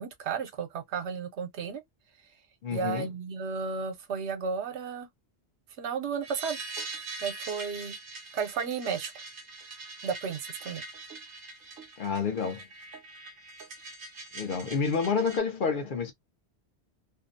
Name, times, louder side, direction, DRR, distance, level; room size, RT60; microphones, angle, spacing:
voice 1, 0.0-1.8 2.7-5.1 5.8-6.9 7.2-8.0 8.3-9.1 10.0-10.8, right 6 dB, 80° right, 1.0 m, -33 dB
voice 2, 2.6-3.1 12.0-12.6 14.3-16.1, left 5 dB, 55° left, 0.7 m, -29 dB
sound 1, 6.2-15.4, right 3 dB, 55° right, 0.8 m, -43 dB
2.6 x 2.0 x 2.5 m
omnidirectional pair, 1.1 m